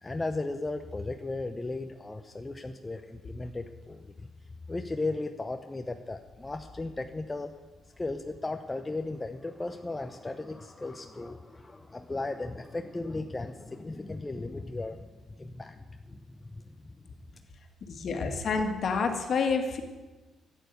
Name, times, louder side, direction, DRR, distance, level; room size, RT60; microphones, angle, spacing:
voice 1, 0.0-4.3 4.7-7.5 8.0-15.1 15.4-16.9, left 2 dB, 20° left, 6 dB, 0.8 m, -36 dB
voice 2, 17.9-19.8, left 5 dB, 55° left, 5 dB, 2.0 m, -28 dB
11.0 x 9.2 x 8.2 m, 1.2 s
cardioid pair, 90°, 0 cm